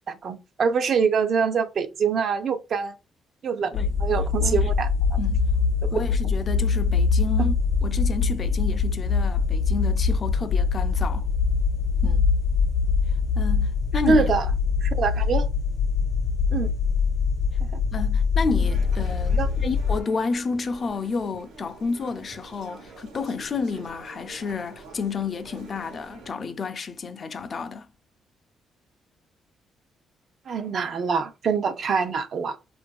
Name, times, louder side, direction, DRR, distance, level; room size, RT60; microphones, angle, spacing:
voice 1, 0.1-3.0 3.4-3.7 4.0-5.2 7.4-7.5 14.1-14.5 14.8-15.5 16.5-16.7 17.7-17.8 19.4-19.5 30.5-32.6, right 5 dB, 55° right, 0.4 m, -24 dB
sound 1, 3.7-20.0, left 5 dB, 75° left, 0.7 m, -23 dB
voice 2, 4.4-4.7 5.2-5.5 5.9-7.6 7.8-11.3 12.0-12.3 13.4-14.3 17.9-27.9, left 4 dB, 45° left, 0.3 m, -31 dB
sound 2, 18.6-26.3, right 3 dB, 90° right, 0.9 m, -47 dB
2.7 x 2.4 x 2.3 m
cardioid pair, 90°, 0 cm